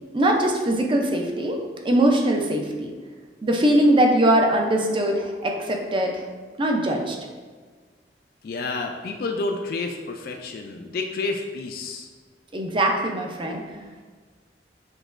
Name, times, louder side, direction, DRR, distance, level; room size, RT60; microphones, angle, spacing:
voice 1, 0.1-1.6 1.8-2.9 3.4-6.2 6.6-7.2 12.5-13.6, right 1 dB, 30° right, 1 dB, 0.4 m, -21 dB
voice 2, 8.4-12.1, left 3 dB, 55° left, 3 dB, 0.3 m, -30 dB
6.1 x 2.9 x 2.5 m, 1.5 s
head